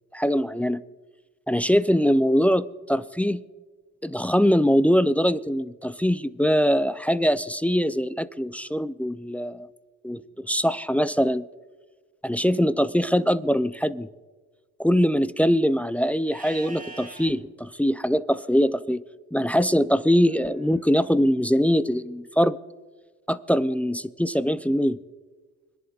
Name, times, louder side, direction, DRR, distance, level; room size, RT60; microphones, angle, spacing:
voice 1, 0.1-0.8 1.5-3.4 4.0-9.7 10.0-11.4 12.2-14.1 14.8-19.0 19.3-22.6 23.3-25.0, equal, 5° left, 13 dB, 0.3 m, -22 dB
Livestock farm animals working animals, 16.3-17.3 20.1-21.1, right 3 dB, 30° right, 2.5 m, -44 dB
25.0 x 10.5 x 2.3 m, 1.3 s
cardioid pair, 95°, 31 cm